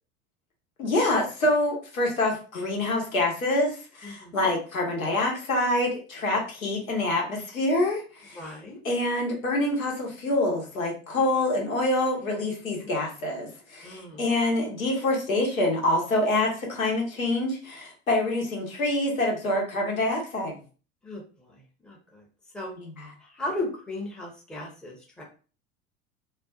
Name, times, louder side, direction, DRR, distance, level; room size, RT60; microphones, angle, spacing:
voice 1, 0.8-8.4 8.8-20.5 22.8-23.1, left 2 dB, 80° left, -1 dB, 0.9 m, -26 dB
voice 2, 4.0-4.5 8.3-8.8 12.8-12.9 13.8-14.3 21.0-22.2 22.5-22.7 23.2-25.2, left 2 dB, ahead, -2 dB, 0.6 m, -36 dB
2.5 x 2.2 x 2.3 m, 0.37 s
figure-of-eight pair, 75°, 41 cm